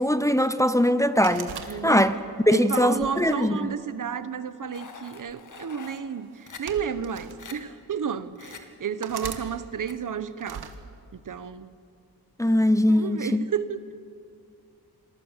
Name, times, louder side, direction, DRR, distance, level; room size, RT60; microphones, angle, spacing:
voice 1, 0.0-1.5 1.8-2.2 2.5-3.7 12.4-13.5, left 1 dB, 10° left, 11 dB, 0.9 m, -21 dB
sound 1, 1.2-2.3 2.9-4.1 5.0-5.3 6.3-7.4 8.1-8.2 9.0-9.4 10.4-10.8, right 7 dB, 75° right, 1.8 m, -40 dB
voice 2, 1.7-2.1 2.5-10.7 11.1-11.7 12.9-13.9, right 7 dB, 55° right, 13 dB, 1.2 m, -32 dB
sound 2, 4.7-6.0 6.5-6.6 7.1-7.2 7.4-7.5 8.3-8.6 9.2-9.3 9.9-10.0, left 5 dB, 50° left, 2.5 m, -43 dB
27.5 x 21.0 x 7.5 m, 2.4 s
cardioid pair, 90°, 38 cm